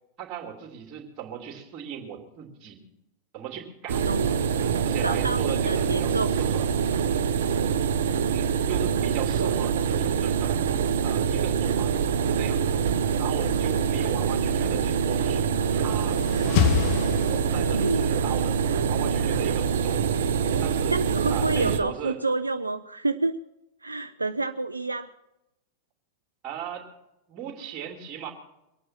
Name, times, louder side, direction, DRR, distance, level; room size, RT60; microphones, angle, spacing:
voice 1, 0.2-2.8 3.3-4.1 4.8-6.7 8.3-10.6 11.0-12.0 12.3-12.8 13.2-16.2 17.2-18.6 18.9-20.0 20.6-20.9 21.3-22.2 26.4-26.9 27.3-28.3, right 9 dB, 35° right, 3 dB, 3.1 m, -37 dB
sound 1, 3.9-21.8, right 7 dB, 60° right, 0.8 m, -25 dB
voice 2, 4.1-4.4 5.0-6.4 9.4-9.5 17.6-18.1 20.9-23.4 23.8-25.1, right 2 dB, 80° right, 11 dB, 0.4 m, -28 dB
sound 2, 15.6-18.0, left 8 dB, 45° left, 1.2 m, -27 dB
23.0 x 9.2 x 6.0 m, 0.92 s
figure-of-eight pair, 90°, 0 cm